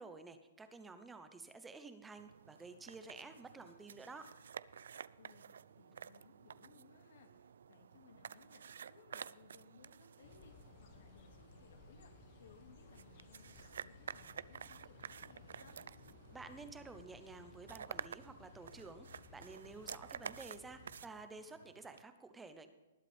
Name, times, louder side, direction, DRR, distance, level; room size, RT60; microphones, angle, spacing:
voice 1, 0.0-4.3 16.3-22.7, right 3 dB, 5° right, 8 dB, 0.8 m, -52 dB
sound 1, 2.2-22.0, right 7 dB, 75° right, 0.4 m, -52 dB
voice 2, 5.2-15.8, left 5 dB, 70° left, 4 dB, 2.3 m, -64 dB
sound 2, 10.2-21.1, left 6 dB, 40° left, 1.1 m, -60 dB
20.0 x 8.2 x 3.5 m, 1.2 s
hypercardioid pair, 155°, 0 cm